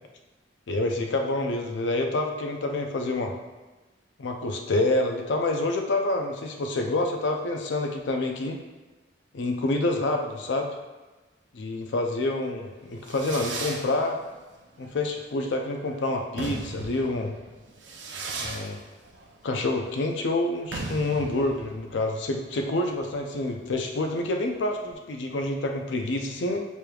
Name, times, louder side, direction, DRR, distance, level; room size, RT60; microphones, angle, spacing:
voice 1, 0.7-3.4 4.2-8.6 9.3-10.7 11.5-14.2 14.8-17.4 18.4-18.8 19.4-26.6, left 2 dB, 80° left, 3 dB, 0.5 m, -27 dB
Fireworks, 12.7-24.9, right 3 dB, 85° right, 0.6 m, -39 dB
4.9 x 3.1 x 2.3 m, 1.2 s
head